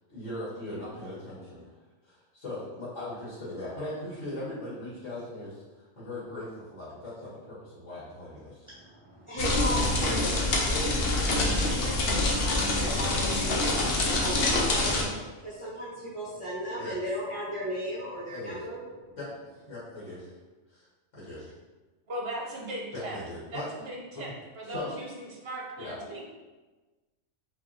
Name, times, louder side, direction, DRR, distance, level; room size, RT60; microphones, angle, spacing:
voice 1, 0.1-1.6 2.0-8.7 16.8-16.9 18.3-18.5 19.2-19.3 19.7-20.3 20.7-20.9 21.1-21.5 22.9-23.7 24.7-24.9 25.8-26.0, left 1 dB, 80° left, -10 dB, 1.9 m, -39 dB
voice 2, 8.6-13.6 14.0-15.1 15.4-19.1, equal, 25° right, -11 dB, 1.4 m, -36 dB
sound 1, 9.4-15.0, left 2 dB, 55° left, 0.9 m, -26 dB
voice 3, 22.1-23.2 23.5-24.3 24.6-26.2, right 1 dB, 55° right, -2 dB, 1.2 m, -38 dB
5.0 x 3.3 x 2.9 m, 1.2 s
omnidirectional pair, 1.3 m